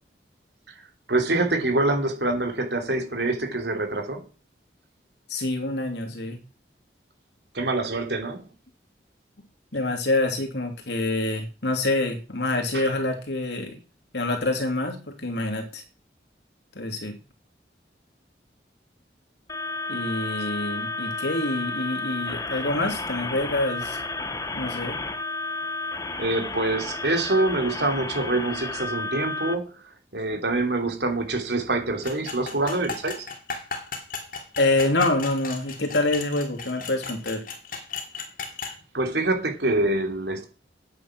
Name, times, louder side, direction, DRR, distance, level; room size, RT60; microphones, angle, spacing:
voice 1, 1.1-4.2 7.5-8.5 12.7-12.9 26.2-29.7 30.1-33.3 38.9-40.5, right 2 dB, 75° right, 3.1 m, -25 dB
voice 2, 5.3-6.4 9.7-13.8 14.1-15.8 16.7-17.2 19.9-24.0 24.5-25.0 34.6-37.4, left 2 dB, 80° left, 3.1 m, -26 dB
sound 1, 19.5-29.5, left 3 dB, 20° left, 0.9 m, -32 dB
sound 2, 32.0-38.8, left 5 dB, 50° left, 2.7 m, -35 dB
9.6 x 8.9 x 6.1 m
head